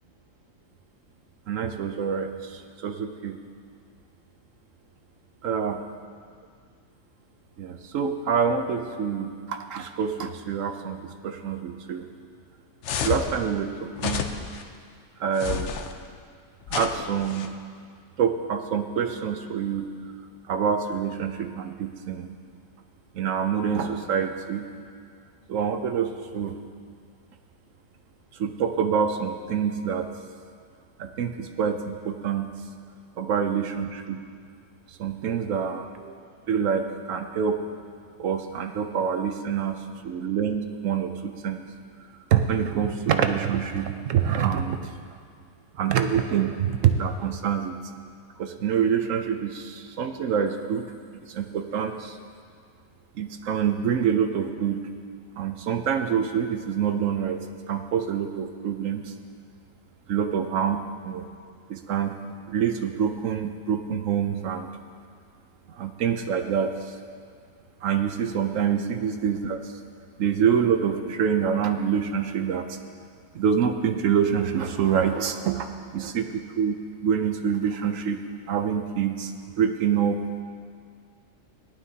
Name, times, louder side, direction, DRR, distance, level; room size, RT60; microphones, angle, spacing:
voice 1, 1.5-3.4 5.4-5.8 7.6-12.1 13.0-14.2 15.2-15.7 16.7-17.5 18.2-19.9 20.5-22.3 23.1-24.6 25.5-26.6 28.4-30.1 31.0-32.5 33.2-34.2 35.0-36.2 36.5-37.6 38.2-41.6 42.3-44.8 45.8-47.8 48.4-50.8 51.3-52.2 53.2-54.8 55.4-59.1 60.1-61.3 61.7-62.2 62.5-64.7 65.8-67.0 67.8-69.6 70.2-72.8 73.3-75.7 75.9-78.2 78.5-80.2, right 7 dB, 75° right, 6 dB, 1.0 m, -26 dB
sound 1, 12.8-13.3 14.0-14.6 15.4-15.9 16.7-17.5, left 7 dB, 65° left, 0.9 m, -30 dB
18.5 x 11.5 x 2.8 m, 2.1 s
omnidirectional pair, 1.4 m